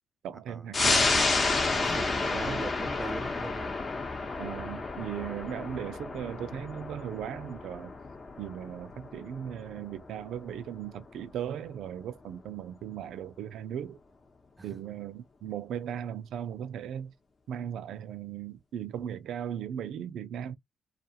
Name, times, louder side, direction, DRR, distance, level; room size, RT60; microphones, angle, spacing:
voice 1, 0.2-1.9 2.3-2.6 4.4-7.9 8.4-14.0 14.6-17.1 17.5-20.5, right 9 dB, 75° right, 0.4 m, -38 dB
sound 1, 0.7-11.7 12.1-12.2, left 3 dB, 35° left, 0.8 m, -31 dB
voice 2, 1.8-3.8 14.6-14.8, right 2 dB, 20° right, 0.5 m, -40 dB
2.4 x 2.4 x 2.7 m
cardioid pair, 90°, 0 cm